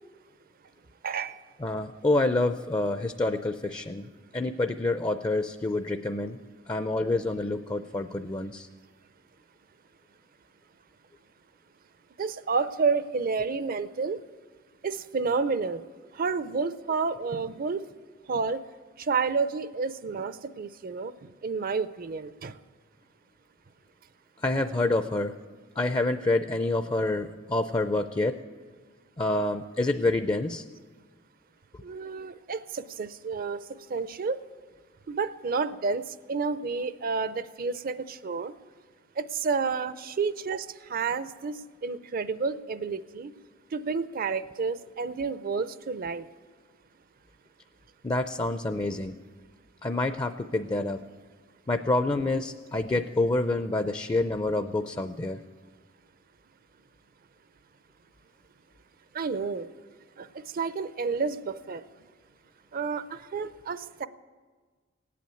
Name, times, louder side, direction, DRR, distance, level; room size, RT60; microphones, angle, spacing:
voice 1, 1.0-1.4 12.2-14.2 14.8-15.8 16.1-17.9 18.3-18.6 19.0-21.1 21.4-22.6 31.8-33.6 33.9-34.4 35.1-38.5 39.2-43.3 43.7-46.3 59.1-59.7 60.2-60.3 60.5-61.8 62.7-64.1, right 4 dB, 45° right, 15 dB, 0.5 m, -30 dB
voice 2, 1.6-6.4 6.7-8.7 24.4-25.3 25.8-28.4 29.2-30.6 48.0-49.1 49.8-51.0 51.7-55.4, left 2 dB, 20° left, 10 dB, 0.4 m, -27 dB
17.0 x 8.5 x 9.0 m, 1.5 s
head